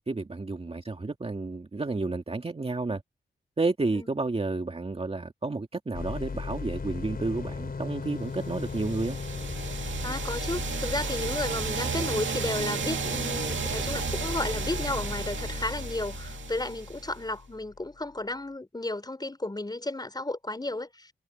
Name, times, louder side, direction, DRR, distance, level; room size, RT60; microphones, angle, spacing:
voice 1, 0.0-3.0 3.6-9.2, right 3 dB, 30° right, 2.4 m, -31 dB
sound 1, 5.9-17.8, left 4 dB, 50° left, 4.0 m, -36 dB
sound 2, 8.5-17.2, right 7 dB, 80° right, 2.2 m, -34 dB
voice 2, 10.0-21.1, left 2 dB, 20° left, 6.0 m, -33 dB
cardioid pair, 80°, 19 cm